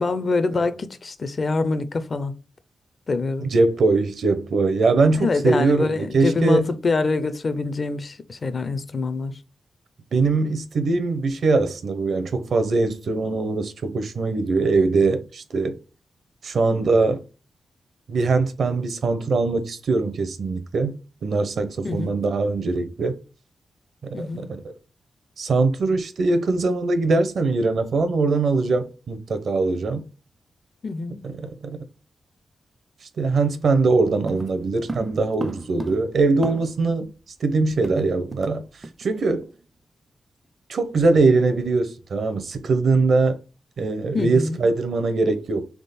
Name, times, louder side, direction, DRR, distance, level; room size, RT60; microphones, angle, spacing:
voice 1, 0.0-2.3 3.1-3.5 5.2-9.4 21.8-22.1 24.1-24.5 30.8-31.3 44.1-44.7, left 3 dB, 40° left, 0.5 m, -25 dB
voice 2, 3.4-6.7 10.1-15.8 16.4-17.2 18.1-20.9 21.2-23.2 24.0-24.7 25.4-30.1 31.2-31.8 33.2-37.1 37.4-38.6 39.0-39.5 40.7-43.4 43.8-45.7, right 3 dB, 65° right, 0.7 m, -22 dB
sound 1, 34.3-36.9 37.2-37.3 37.5-38.6 38.8-39.0 39.4-39.6, right 2 dB, 25° right, 0.4 m, -35 dB
3.6 x 3.6 x 4.1 m
wide cardioid pair, 120°, 0 cm